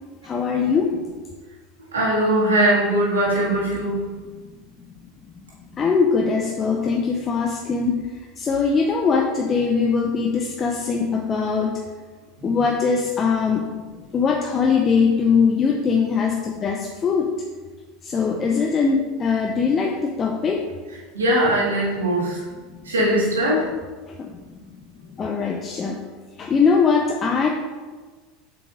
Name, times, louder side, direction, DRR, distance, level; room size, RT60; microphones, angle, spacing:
voice 1, 0.2-1.0 4.4-4.5 5.8-11.8 12.4-13.7 14.0-17.3 18.0-20.6 22.5-22.9 24.1-24.4 25.1-26.0 26.4-27.5, left 5 dB, 30° left, 1 dB, 0.6 m, -21 dB
voice 2, 1.9-4.0 12.5-12.6 21.1-22.4 22.8-23.7, right 1 dB, 85° right, -6 dB, 1.9 m, -20 dB
6.8 x 4.9 x 3.7 m, 1.4 s
hypercardioid pair, 80°, 0 cm